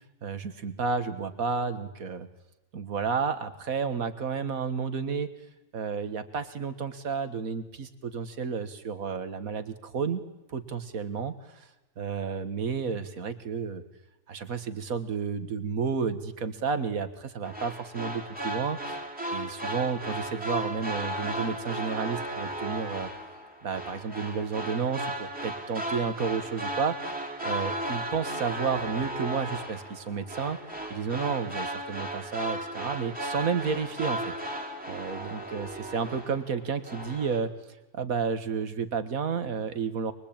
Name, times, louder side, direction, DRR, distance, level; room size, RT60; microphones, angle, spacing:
voice 1, 0.2-2.3 2.7-5.3 5.7-10.2 10.5-11.7 12.0-13.8 14.3-19.0 19.3-23.1 23.6-30.6 30.9-34.3 34.9-37.5 37.9-40.1, right 5 dB, 80° right, 10 dB, 2.0 m, -31 dB
sound 1, 17.4-36.5 36.8-37.4, right 1 dB, 5° right, 3.1 m, -35 dB
23.5 x 23.0 x 8.8 m, 1.0 s
omnidirectional pair, 1.5 m